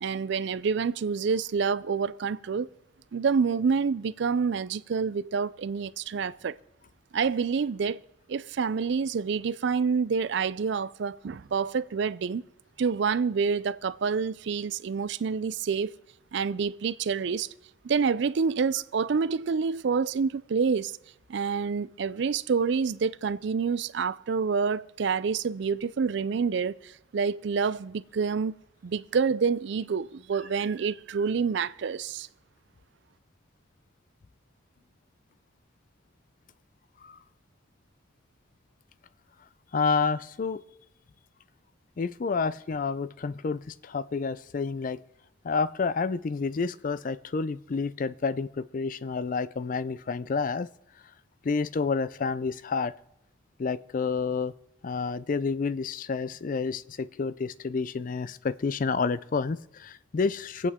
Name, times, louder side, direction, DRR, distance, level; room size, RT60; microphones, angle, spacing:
voice 1, 0.0-2.7 3.1-6.6 7.1-8.0 8.3-12.4 12.8-15.9 16.3-17.5 17.8-20.9 21.3-28.5 28.8-32.3, right 5 dB, 60° right, 0.4 m, -27 dB
voice 2, 39.7-40.6 42.0-45.0 45.4-50.7 51.4-52.9 53.6-54.5 54.8-60.7, left 4 dB, 40° left, 0.4 m, -29 dB
25.0 x 8.4 x 3.6 m
head